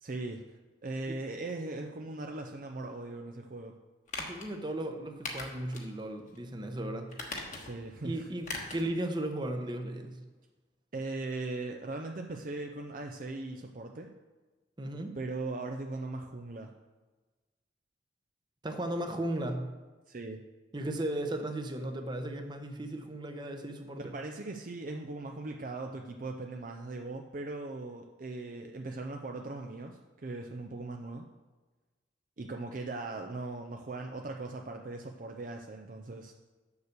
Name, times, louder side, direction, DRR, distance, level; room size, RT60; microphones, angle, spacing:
voice 1, 0.0-0.4 0.8-3.7 7.6-8.3 10.9-14.1 15.2-16.7 20.1-20.4 23.9-31.3 32.4-36.3, right 2 dB, 45° right, 3 dB, 0.5 m, -39 dB
sound 1, 4.1-4.5 5.2-5.9 6.3-6.4 7.1-7.8 8.4-8.9 9.2-9.3, left 3 dB, 40° left, 1.3 m, -39 dB
voice 2, 4.2-7.1 8.0-10.2 14.8-15.2 18.6-19.7 20.7-24.1, right 1 dB, 25° right, 5 dB, 0.9 m, -36 dB
7.1 x 6.5 x 6.6 m, 1.3 s
head